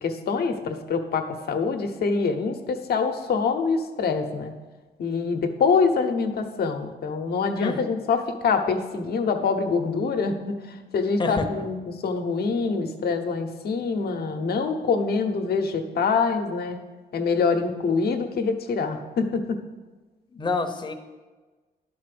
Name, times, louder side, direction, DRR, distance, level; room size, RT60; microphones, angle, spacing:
voice 1, 0.0-4.5 5.0-10.6 10.9-11.8 12.0-16.8 17.1-19.6, left 5 dB, 70° left, 6 dB, 0.9 m, -25 dB
voice 2, 7.5-7.9 11.2-11.6 20.3-20.9, left 3 dB, 25° left, 6 dB, 0.8 m, -28 dB
11.0 x 4.3 x 6.8 m, 1.3 s
cardioid pair, 100°, 17 cm